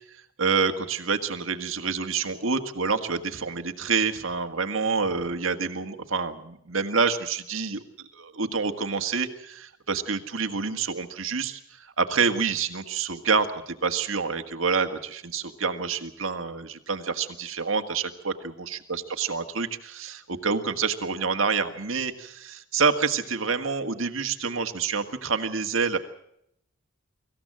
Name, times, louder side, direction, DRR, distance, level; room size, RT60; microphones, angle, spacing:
voice 1, 0.4-7.8 8.2-26.0, right 5 dB, 65° right, 6 dB, 1.8 m, -27 dB
25.0 x 15.0 x 7.6 m, 0.76 s
head